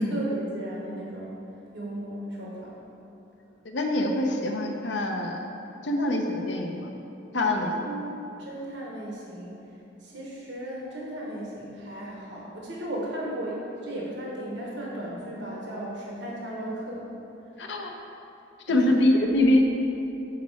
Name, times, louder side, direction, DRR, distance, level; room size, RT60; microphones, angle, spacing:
voice 1, 0.0-1.4 1.7-2.8 7.8-8.1 8.4-9.7 10.0-17.1 18.7-18.9, right 1 dB, 75° right, -4 dB, 1.1 m, -35 dB
voice 2, 3.6-5.4 5.8-6.9 7.3-7.7 17.6-17.9 18.7-19.6, left 1 dB, 75° left, 2 dB, 0.7 m, -24 dB
5.9 x 4.2 x 6.3 m, 2.9 s
head